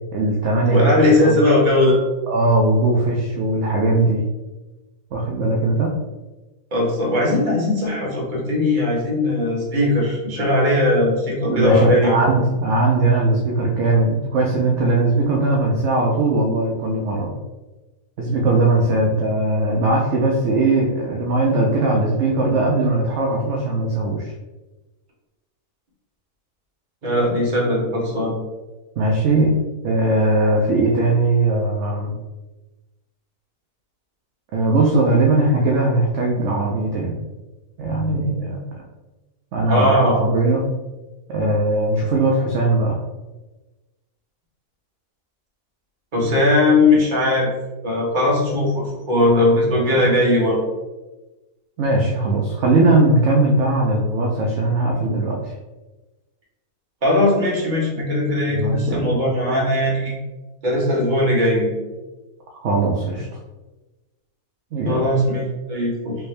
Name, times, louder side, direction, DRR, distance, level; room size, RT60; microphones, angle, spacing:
voice 1, 0.1-0.9 1.2-1.4 2.3-4.2 5.1-5.9 11.5-17.3 18.2-24.3 29.0-32.1 34.5-37.2 37.8-38.7 39.5-40.6 41.3-43.0 46.2-46.5 49.7-50.1 51.8-55.5 58.5-59.1 62.6-63.3 64.7-65.1, right 2 dB, 65° right, -1 dB, 0.8 m, -19 dB
voice 2, 0.7-2.0 6.7-12.2 27.0-28.3 39.7-40.2 46.1-47.5 47.8-48.7 49.1-50.6 57.0-60.2 60.6-61.7 64.8-65.4 65.7-66.1, left 1 dB, 35° right, -4 dB, 1.1 m, -19 dB
3.4 x 2.7 x 3.2 m, 1.1 s
omnidirectional pair, 1.6 m